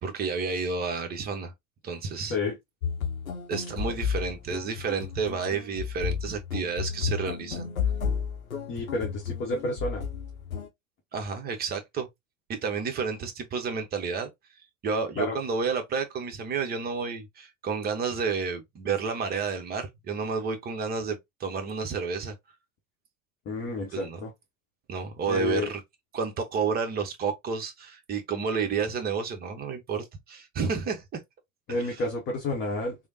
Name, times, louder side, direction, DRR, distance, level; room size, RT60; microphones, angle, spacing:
voice 1, 0.0-1.5 1.8-2.4 3.5-7.7 11.1-12.1 12.5-14.3 14.8-22.3 23.9-24.2 24.9-25.8 26.1-31.2 31.7-32.0, right 5 dB, 25° right, 0.7 m, -30 dB
sound 1, 2.8-10.7, left 7 dB, 85° left, 0.6 m, -32 dB
voice 2, 8.7-10.0 15.2-15.4 23.5-24.3 25.3-25.7 31.7-33.0, left 2 dB, 30° left, 0.8 m, -30 dB
3.2 x 2.0 x 2.6 m
figure-of-eight pair, 85°, 41 cm